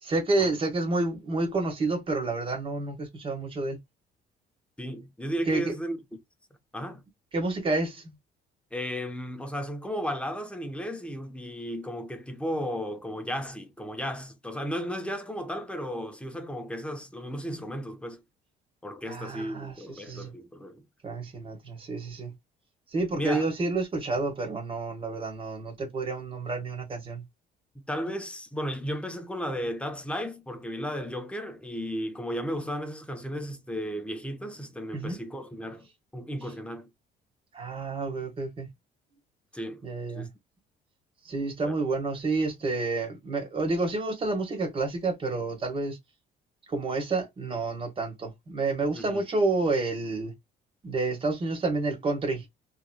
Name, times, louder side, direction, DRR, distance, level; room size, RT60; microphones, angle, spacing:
voice 1, 0.0-3.8 5.5-5.7 7.3-8.1 19.1-20.3 21.0-22.3 22.9-27.2 34.9-35.2 37.5-38.7 39.8-40.3 41.2-46.0 46.7-50.3 50.8-52.5, right 3 dB, 30° right, 1.5 m, -29 dB
voice 2, 4.8-6.0 6.7-7.0 8.7-18.2 18.8-20.9 23.1-23.5 27.9-35.9 36.1-36.9 39.5-39.8 40.1-40.3 41.6-41.7 48.9-49.3, equal, 5° left, 0.8 m, -34 dB
3.6 x 3.1 x 2.2 m
cardioid pair, 110°, 17 cm